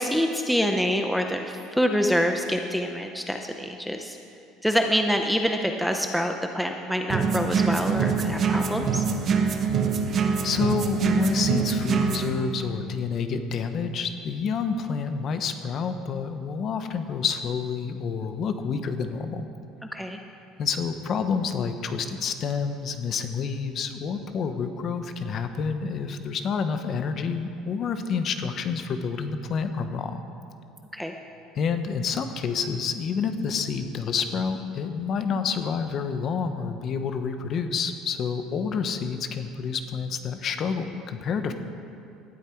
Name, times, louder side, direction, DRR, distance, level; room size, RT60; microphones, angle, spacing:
voice 1, 0.0-4.2 4.6-9.0 19.9-20.2 30.9-31.1, equal, ahead, 3 dB, 0.6 m, -26 dB
sound 1, 7.1-12.3, right 5 dB, 30° right, 1.0 m, -24 dB
voice 2, 10.4-19.5 20.6-30.2 31.6-41.5, left 5 dB, 35° left, 8 dB, 0.9 m, -28 dB
18.5 x 12.0 x 4.6 m, 2.6 s
cardioid pair, 170°, 0 cm